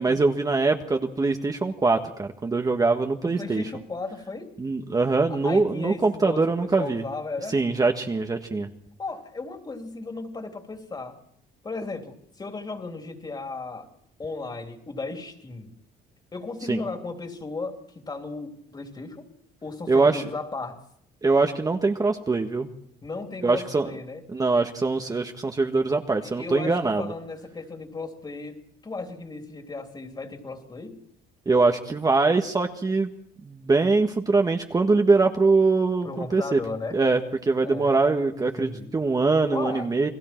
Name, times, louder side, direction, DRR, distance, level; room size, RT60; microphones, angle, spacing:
voice 1, 0.0-3.6 4.6-7.0 7.5-8.7 16.7-16.8 19.9-20.2 21.2-22.7 23.4-23.9 24.3-27.1 31.4-33.1 33.4-36.6 36.9-40.1, right 3 dB, 20° right, 4 dB, 1.5 m, -23 dB
voice 2, 3.1-4.5 5.3-7.6 9.0-11.2 11.6-13.9 14.2-15.7 16.3-19.3 19.6-20.8 23.0-24.2 26.2-31.0 36.0-37.0 37.6-37.9 38.3-38.9 39.5-39.9, left 3 dB, 25° left, 4 dB, 3.3 m, -35 dB
30.0 x 20.5 x 4.5 m, 0.67 s
cardioid pair, 110°, 17 cm